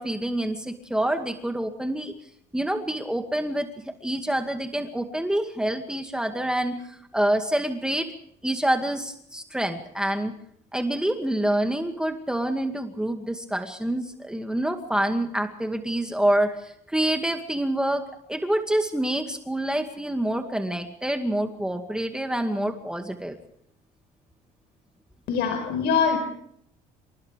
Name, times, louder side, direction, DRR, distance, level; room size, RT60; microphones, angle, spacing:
voice 1, 0.0-2.1 2.5-8.1 8.4-10.3 10.7-23.4, right 1 dB, 5° right, 4 dB, 2.1 m, -27 dB
voice 2, 25.3-26.2, left 6 dB, 80° left, 6 dB, 4.8 m, -23 dB
28.5 x 26.5 x 3.5 m, 0.70 s
cardioid pair, 110°, 17 cm